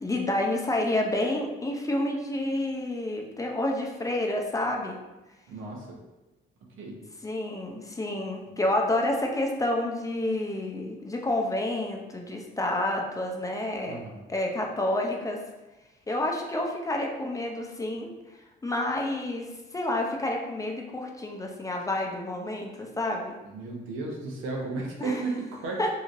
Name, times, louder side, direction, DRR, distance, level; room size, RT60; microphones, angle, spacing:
voice 1, 0.0-5.0 7.2-14.0 14.3-15.4 16.1-18.1 18.6-19.5 19.7-23.4 25.0-25.2 25.8-25.9, left 1 dB, 15° left, 0 dB, 0.4 m, -29 dB
voice 2, 5.5-6.0 6.8-7.0 13.8-14.2 23.4-25.8, right 3 dB, 90° right, -1 dB, 0.7 m, -34 dB
3.0 x 2.7 x 2.4 m, 1.1 s
cardioid pair, 90°, 20 cm